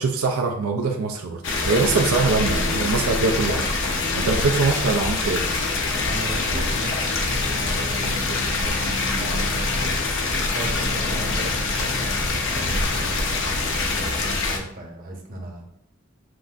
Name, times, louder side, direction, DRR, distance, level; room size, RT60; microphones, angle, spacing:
voice 1, 0.0-3.7 4.1-5.4, right 4 dB, 85° right, 3 dB, 0.5 m, -23 dB
sound 1, 1.4-14.6, left 3 dB, 65° left, 0.8 m, -24 dB
voice 2, 5.8-9.9 10.5-15.6, right 1 dB, 45° right, 1 dB, 0.9 m, -37 dB
7.5 x 2.6 x 2.4 m, 0.73 s
head